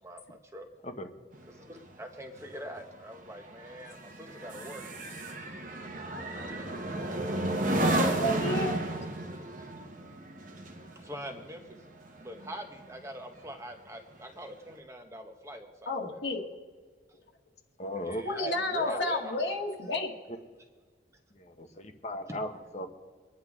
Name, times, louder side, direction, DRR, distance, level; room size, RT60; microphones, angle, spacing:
voice 1, 0.0-0.7 1.5-4.9 6.2-6.6 9.6-9.7 10.9-11.8 12.1-16.2 18.0-19.6 22.3-22.4, equal, 15° right, 4 dB, 1.3 m, -44 dB
sound 1, 1.3-13.0 13.4-13.7, right 1 dB, 45° right, 1.2 m, -33 dB
voice 2, 7.8-8.8 15.9-16.4 18.2-20.1, left 1 dB, 70° left, -1 dB, 1.8 m, -31 dB
voice 3, 17.8-18.2 18.8-19.0 21.3-22.9, left 1 dB, 35° left, 6 dB, 1.1 m, -37 dB
24.5 x 10.0 x 3.7 m, 1.5 s
head